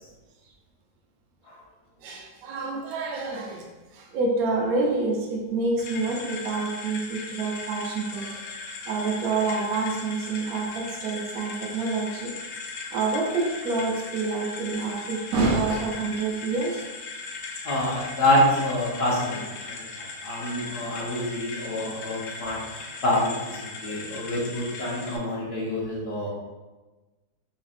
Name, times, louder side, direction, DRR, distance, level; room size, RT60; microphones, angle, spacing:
voice 1, 2.0-3.6 4.1-8.4 8.9-12.3 12.9-16.8, right 3 dB, 75° right, -1 dB, 1.1 m, -27 dB
sound 1, 5.8-25.2, left 3 dB, 70° left, 0.6 m, -38 dB
voice 2, 17.6-19.7 20.0-26.3, left 1 dB, 50° left, -5 dB, 1.0 m, -27 dB
4.1 x 3.0 x 2.5 m, 1.2 s
omnidirectional pair, 1.6 m